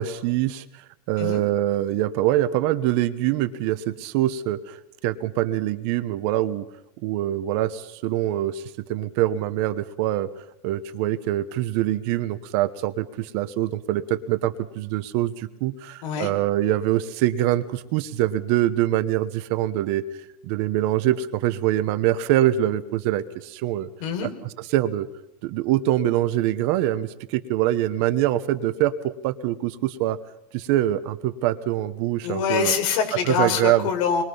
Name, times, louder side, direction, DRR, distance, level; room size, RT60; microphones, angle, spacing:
voice 1, 0.0-6.7 7.0-8.6 8.9-10.3 10.6-20.0 20.4-23.9 24.6-25.1 25.4-30.2 30.5-32.7 33.2-33.9, right 13 dB, 45° right, 12 dB, 1.1 m, -24 dB
voice 2, 32.2-34.2, left 7 dB, 60° left, 4 dB, 5.2 m, -24 dB
26.5 x 22.5 x 5.6 m, 0.81 s
supercardioid pair, 175°, 19 cm